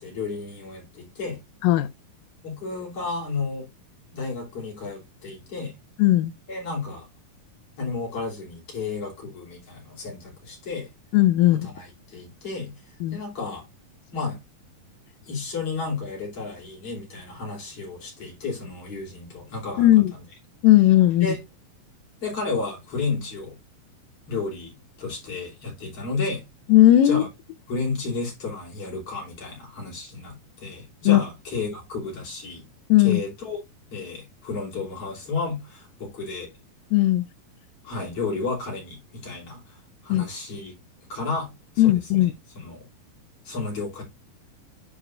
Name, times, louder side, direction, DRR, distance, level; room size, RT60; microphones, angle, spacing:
voice 1, 0.0-1.4 2.4-3.7 4.1-5.7 6.5-7.1 7.8-10.9 11.6-12.7 13.1-13.6 14.1-14.4 15.3-20.2 21.2-21.4 22.2-23.6 24.3-24.7 25.0-26.4 27.0-27.3 27.7-32.6 33.0-33.6 33.9-36.5 37.8-40.7 41.1-41.5 41.7-42.3 42.5-42.9 43.4-44.0, left 4 dB, 40° left, 4.3 m, -32 dB
voice 2, 6.0-6.3 11.1-11.7 13.0-13.2 19.8-20.1 20.6-21.3 26.7-27.2 31.1-31.2 32.9-33.2 36.9-37.2 40.1-40.2 41.8-42.3, left 14 dB, 80° left, 2.2 m, -17 dB
9.9 x 5.5 x 2.5 m
omnidirectional pair, 4.2 m